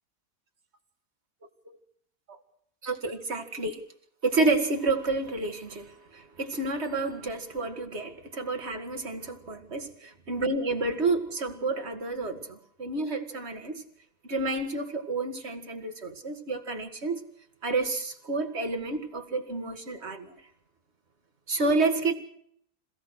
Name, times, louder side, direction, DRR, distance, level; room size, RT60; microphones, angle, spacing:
voice 1, 2.8-3.8 4.2-13.8 14.3-17.2 17.6-20.4 21.5-22.1, right 3 dB, 50° right, 2.6 m, -30 dB
27.0 x 16.5 x 6.5 m
omnidirectional pair, 1.5 m